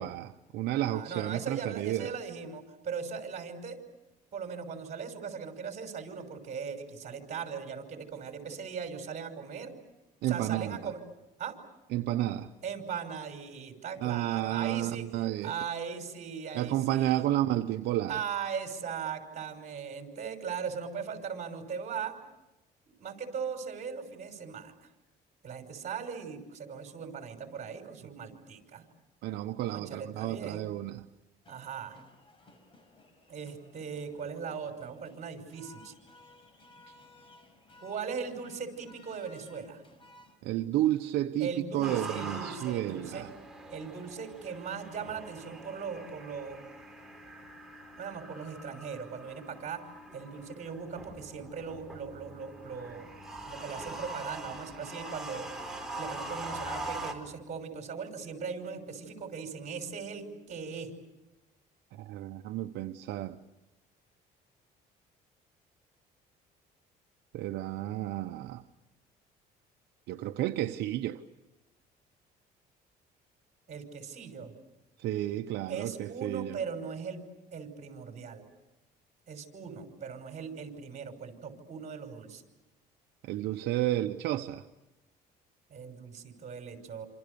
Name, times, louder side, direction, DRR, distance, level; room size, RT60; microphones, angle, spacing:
voice 1, 0.0-2.1 10.2-10.9 11.9-12.5 14.0-15.5 16.5-18.2 29.2-31.0 40.4-43.3 62.0-63.4 67.3-68.6 70.1-71.2 75.0-76.6 83.2-84.6, right 14 dB, 80° right, 0.9 m, -31 dB
voice 2, 0.7-3.8 4.3-9.7 10.2-11.0 11.4-11.6 12.6-15.1 15.4-17.3 18.1-22.1 22.9-24.9 25.4-28.8 29.7-30.7 31.5-32.0 33.3-35.9 37.8-39.8 41.4-43.2 43.7-46.6 48.0-49.8 50.1-53.1 53.5-55.5 56.0-60.9 73.7-74.5 75.7-77.2 77.5-78.4 79.3-82.4 85.7-87.1, right 6 dB, 45° right, 5.8 m, -39 dB
sound 1, 31.4-40.4, left 2 dB, 30° left, 5.7 m, -58 dB
sound 2, 40.5-60.5, left 4 dB, 55° left, 6.6 m, -57 dB
sound 3, 41.8-57.1, right 2 dB, 5° right, 4.5 m, -43 dB
28.5 x 27.0 x 6.9 m
cardioid pair, 110°, 17 cm